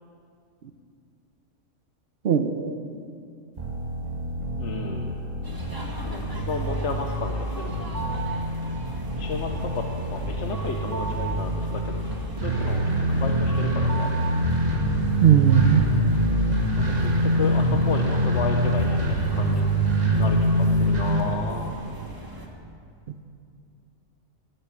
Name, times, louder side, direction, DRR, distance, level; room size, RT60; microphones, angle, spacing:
voice 1, 2.2-2.8 15.2-15.8, right 8 dB, 55° right, 9 dB, 0.9 m, -18 dB
sound 1, 3.6-21.2, right 1 dB, 35° right, 1.8 m, -25 dB
voice 2, 4.6-5.2 6.0-7.7 9.2-12.0 12.4-14.1 16.8-19.7 20.1-21.7, left 4 dB, 70° left, 2 dB, 1.2 m, -33 dB
sound 2, 5.4-22.5, right 2 dB, 15° right, 1.6 m, -39 dB
18.5 x 8.6 x 7.2 m, 2.4 s
omnidirectional pair, 1.3 m